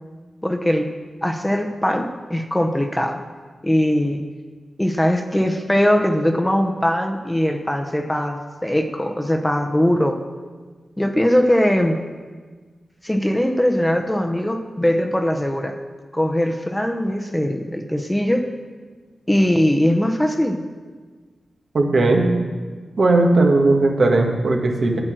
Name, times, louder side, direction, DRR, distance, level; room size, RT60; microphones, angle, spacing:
voice 1, 0.4-0.9 1.2-3.2 3.6-4.2 4.8-10.2 11.0-12.0 13.0-15.7 16.1-18.5 19.3-20.6, equal, 10° left, 4 dB, 0.9 m, -20 dB
voice 2, 21.7-22.3 23.0-25.0, right 2 dB, 65° right, 1 dB, 1.6 m, -17 dB
8.7 x 8.6 x 6.3 m, 1.4 s
cardioid pair, 60°, 0 cm